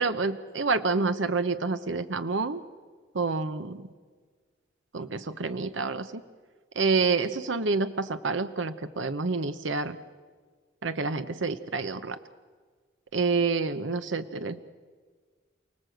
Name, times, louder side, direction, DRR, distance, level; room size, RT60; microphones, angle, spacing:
voice 1, 0.0-2.6 3.1-3.9 4.9-6.2 6.7-10.0 10.8-12.2 13.1-14.6, right 4 dB, 75° right, 11 dB, 0.9 m, -28 dB
29.0 x 19.0 x 7.9 m, 1.5 s
head